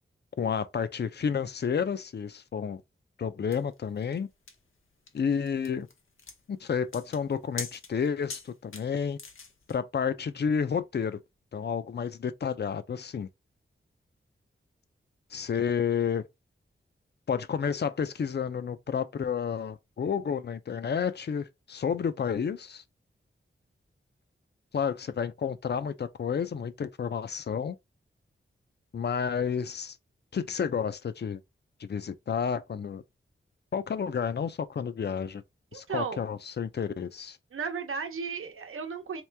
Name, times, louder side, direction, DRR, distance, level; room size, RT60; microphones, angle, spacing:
voice 1, 0.4-2.8 3.2-4.3 5.1-5.9 6.5-9.2 9.7-11.2 11.5-13.3 15.3-16.3 17.3-22.8 24.7-27.8 28.9-30.0 30.3-31.4 31.8-33.0 33.7-35.4 35.7-37.4, left 7 dB, 55° left, 0.5 m, -30 dB
sound 1, 3.5-9.8, left 5 dB, 75° left, 0.9 m, -44 dB
voice 2, 35.7-36.2 37.5-39.2, right 5 dB, 80° right, 0.9 m, -34 dB
3.1 x 3.0 x 3.4 m
wide cardioid pair, 80°, 21 cm